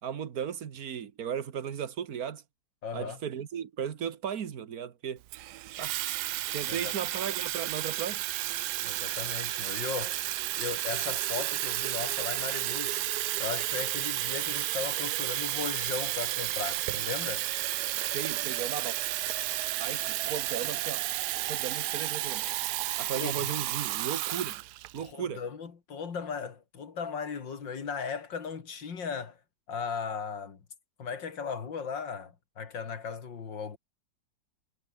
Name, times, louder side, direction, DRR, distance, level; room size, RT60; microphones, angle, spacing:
voice 1, 0.0-2.4 2.9-5.2 5.8-6.0 6.5-8.2 18.1-19.0 19.8-21.0 21.5-22.6 23.0-24.6 24.9-25.4, right 8 dB, 55° right, 1.7 m, -36 dB
voice 2, 2.8-3.2 6.7-6.9 8.8-10.3 10.6-13.0 13.4-17.5 23.1-23.4 25.0-29.4 29.7-30.6 31.0-33.8, left 6 dB, 85° left, 3.0 m, -37 dB
Water tap faucet / Fill (with liquid), 5.3-25.1, right 15 dB, 70° right, 1.1 m, -32 dB
omnidirectional pair, 2.0 m